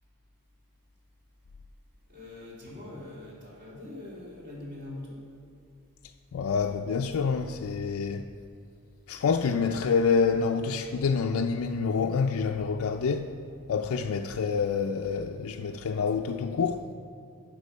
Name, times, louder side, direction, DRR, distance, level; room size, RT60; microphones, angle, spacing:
voice 1, 2.1-5.2, left 2 dB, 40° right, 2.8 m, -43 dB
voice 2, 6.3-8.3 9.1-13.3 13.7-16.9, left 5 dB, 65° left, 0.4 m, -27 dB
13.5 x 5.3 x 5.3 m
head